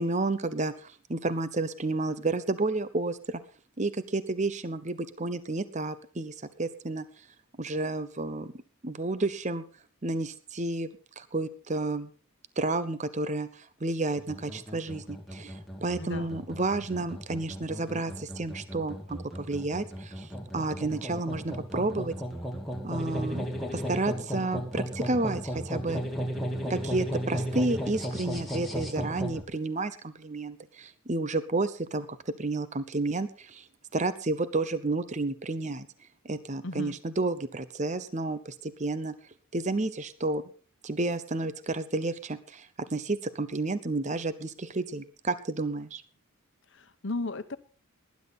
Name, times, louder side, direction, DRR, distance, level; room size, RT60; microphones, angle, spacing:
voice 1, 0.0-3.4 3.8-7.1 7.6-8.5 8.8-9.6 10.0-10.9 11.2-12.1 12.6-22.1 22.8-26.0 26.7-32.1 32.4-33.7 33.9-35.9 36.2-39.1 39.5-40.4 40.8-46.0, right 2 dB, 35° right, 13 dB, 0.8 m, -31 dB
sound 1, 14.2-29.4, equal, ahead, 2.1 m, -35 dB
voice 2, 16.0-16.3 36.6-37.0 46.7-47.6, left 2 dB, 55° left, 12 dB, 1.0 m, -35 dB
19.0 x 10.5 x 4.2 m, 0.38 s
head